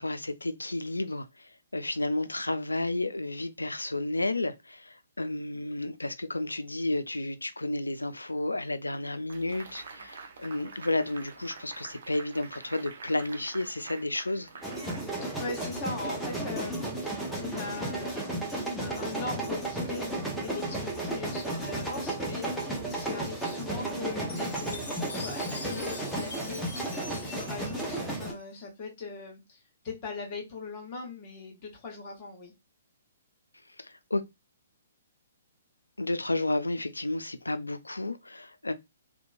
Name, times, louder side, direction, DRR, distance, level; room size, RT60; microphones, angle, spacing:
voice 1, 0.0-14.5 33.8-34.2 36.0-38.7, left 2 dB, 85° left, 0.3 m, -32 dB
sound 1, 9.3-15.8, right 4 dB, 55° right, 0.5 m, -47 dB
sound 2, 14.6-28.3, right 1 dB, ahead, 0.7 m, -34 dB
voice 2, 15.2-18.2 18.7-20.1 20.4-32.5, left 4 dB, 35° left, 1.1 m, -40 dB
Chime, 24.3-28.6, left 3 dB, 65° left, 0.8 m, -43 dB
2.8 x 2.2 x 2.5 m
figure-of-eight pair, 125°, 0 cm